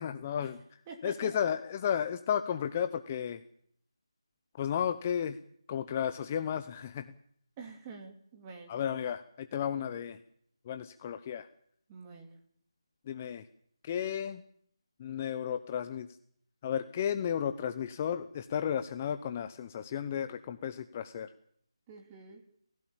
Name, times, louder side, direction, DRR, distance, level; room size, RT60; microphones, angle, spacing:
voice 1, 0.0-3.4 4.5-5.4 5.7-7.1 8.7-10.2 10.6-11.5 13.1-13.5 13.8-14.4 15.0-16.1 16.6-21.3, left 8 dB, 20° left, 10 dB, 0.8 m, -33 dB
voice 2, 0.9-1.3 7.6-8.8 11.9-12.4 21.9-22.4, right 4 dB, 15° right, 3 dB, 2.8 m, -47 dB
29.5 x 15.5 x 7.2 m, 0.69 s
figure-of-eight pair, 165°, 3 cm